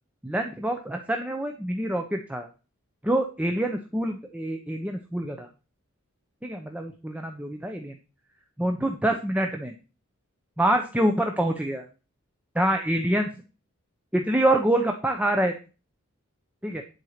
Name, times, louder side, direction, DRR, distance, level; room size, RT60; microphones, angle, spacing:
voice 1, 0.2-2.5 3.0-5.5 6.4-7.9 8.6-9.7 10.6-11.8 12.5-13.3 14.1-15.5 16.6-16.8, right 1 dB, 5° right, 4 dB, 0.8 m, -26 dB
11.0 x 4.6 x 6.6 m, 0.32 s
head